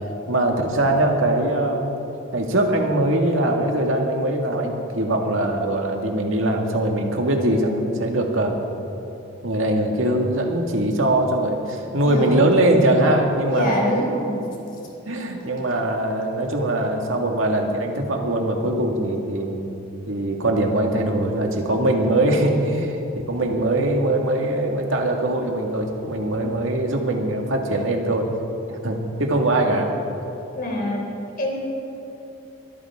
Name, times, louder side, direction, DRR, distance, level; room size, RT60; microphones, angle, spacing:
voice 1, 0.3-2.0 2.3-8.6 9.4-13.7 15.1-19.6 20.1-28.3 28.7-29.9, right 1 dB, 80° right, 2 dB, 1.9 m, -22 dB
voice 2, 12.0-12.4 13.5-14.4 30.5-31.0 31.4-31.5, equal, 45° left, -1 dB, 3.5 m, -24 dB
23.0 x 13.0 x 3.6 m, 3.0 s
head